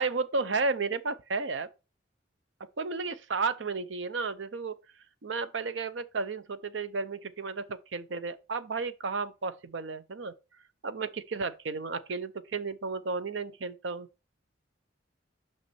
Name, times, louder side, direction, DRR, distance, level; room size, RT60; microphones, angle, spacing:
voice 1, 0.0-1.7 2.8-4.7 5.2-10.3 10.8-14.1, right 4 dB, 65° right, 0.7 m, -33 dB
6.0 x 5.8 x 4.3 m
head